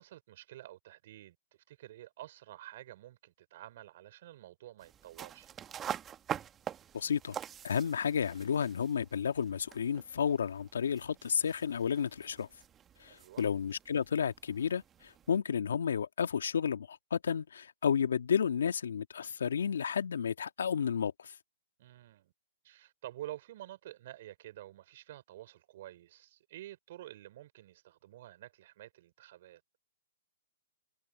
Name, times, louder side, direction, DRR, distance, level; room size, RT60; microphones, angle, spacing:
voice 1, 0.0-1.3 1.7-5.5 13.1-13.5 21.8-22.3 22.6-29.6, right 14 dB, 50° right, 4.2 m, -49 dB
sound 1, 4.8-15.4, right 9 dB, 20° right, 1.4 m, -46 dB
voice 2, 6.9-7.4 7.6-12.5 13.0-21.3, left 7 dB, 75° left, 1.7 m, -32 dB
hypercardioid pair, 130°, 0 cm